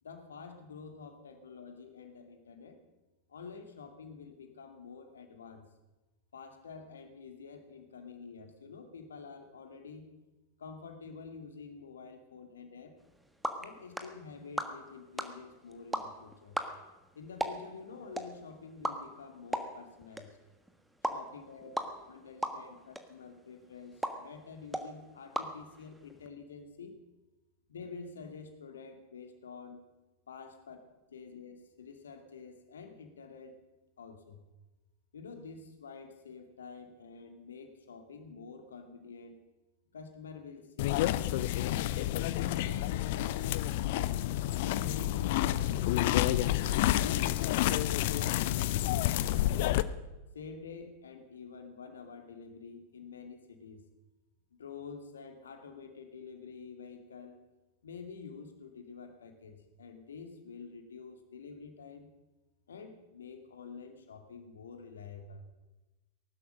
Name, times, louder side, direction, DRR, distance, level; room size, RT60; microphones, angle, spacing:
voice 1, 0.0-2.8 3.3-5.7 6.3-10.1 10.6-13.0 13.6-16.6 17.2-20.4 21.1-27.0 27.7-29.8 30.3-30.8 31.1-33.6 34.0-34.4 35.1-39.4 39.9-43.6 44.6-49.7 50.3-53.8 54.6-57.4 57.8-62.1 62.7-65.4, left 5 dB, 65° left, 6 dB, 2.2 m, -48 dB
sound 1, 13.0-26.3, right 1 dB, 5° right, 1.4 m, -40 dB
sound 2, 40.8-49.8, left 14 dB, 50° left, 0.6 m, -29 dB
18.5 x 12.0 x 6.6 m, 1.1 s
figure-of-eight pair, 90°, 0 cm